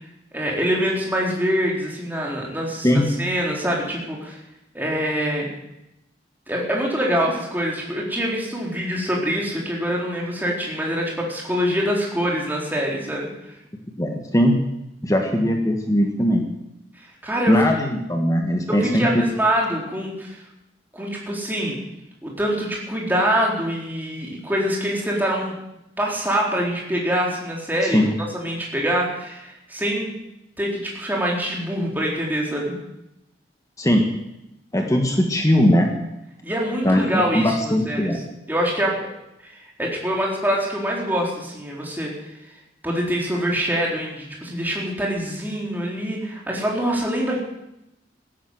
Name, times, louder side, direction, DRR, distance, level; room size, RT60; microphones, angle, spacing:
voice 1, 0.3-4.4 4.7-5.5 6.5-13.5 17.0-17.6 18.7-20.4 20.9-21.8 22.2-25.5 26.0-30.1 30.6-32.8 36.4-38.1 38.5-39.0 39.4-42.1 42.8-47.4, equal, 10° right, -2 dB, 3.9 m, -25 dB
voice 2, 14.0-14.6 15.0-16.4 17.5-19.1 27.8-28.1 33.8-34.1 34.7-35.9 36.8-38.2, equal, 20° left, 3 dB, 1.6 m, -19 dB
15.5 x 12.0 x 7.9 m, 0.87 s
head